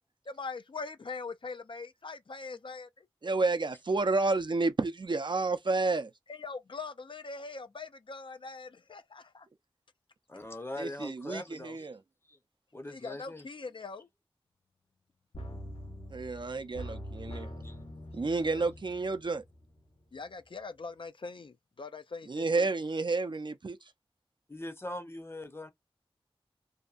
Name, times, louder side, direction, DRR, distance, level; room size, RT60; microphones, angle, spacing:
voice 1, 0.3-3.1 6.3-9.5 12.9-14.1 18.4-18.5 20.1-22.7, left 4 dB, 60° left, 0.4 m, -42 dB
voice 2, 3.2-6.1 10.8-12.0 16.1-17.5 18.1-19.4 22.3-23.8, right 3 dB, 55° right, 0.4 m, -30 dB
voice 3, 10.3-11.9 12.3-12.4 12.7-13.4 17.6-17.8 24.5-25.7, left 1 dB, 25° left, 0.7 m, -41 dB
sound 1, 15.3-20.0 20.4-20.5, equal, 75° left, 0.9 m, -44 dB
2.7 x 2.2 x 2.4 m
wide cardioid pair, 60°, 10 cm